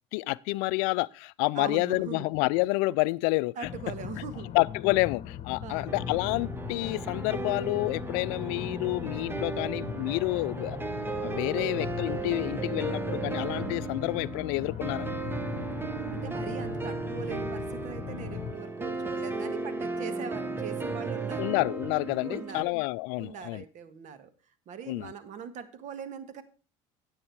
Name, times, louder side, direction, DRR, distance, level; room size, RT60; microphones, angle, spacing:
voice 1, 0.1-3.7 4.5-10.8 11.2-15.1 21.4-23.6 24.9-25.1, left 23 dB, 70° left, 0.4 m, -29 dB
voice 2, 1.5-2.3 3.5-4.5 5.6-6.0 11.4-11.7 15.9-21.5 22.2-22.7 23.2-24.3 24.7-26.4, right 7 dB, 50° right, 1.6 m, -41 dB
sound 1, 3.6-18.6, left 10 dB, 45° left, 1.1 m, -39 dB
sound 2, 5.9-22.6, right 3 dB, 15° right, 1.2 m, -35 dB
9.8 x 8.9 x 4.6 m
supercardioid pair, 95°, 16 cm